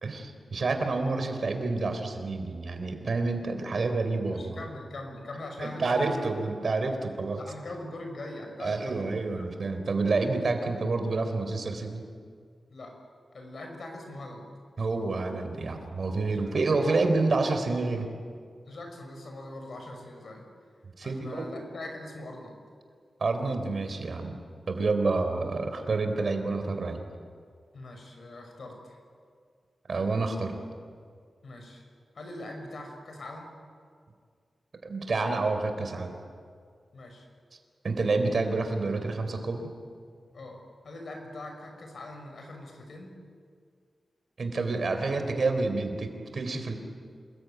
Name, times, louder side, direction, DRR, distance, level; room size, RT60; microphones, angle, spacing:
voice 1, 0.0-4.6 5.6-7.4 8.6-12.0 14.8-18.1 21.0-21.6 23.2-24.4 24.7-27.0 29.9-30.6 34.8-36.1 37.8-39.7 44.4-46.8, right 3 dB, 55° right, 6 dB, 3.7 m, -28 dB
voice 2, 4.3-6.3 7.3-9.2 12.7-13.0 13.3-14.5 16.2-16.6 17.0-17.1 18.7-20.5 21.0-22.6 27.7-29.0 31.4-31.8 32.1-33.6 36.9-37.3 40.3-40.6 40.8-43.2, left 2 dB, 60° left, 3 dB, 6.5 m, -42 dB
27.5 x 21.0 x 9.3 m, 2.1 s
wide cardioid pair, 115°, 0 cm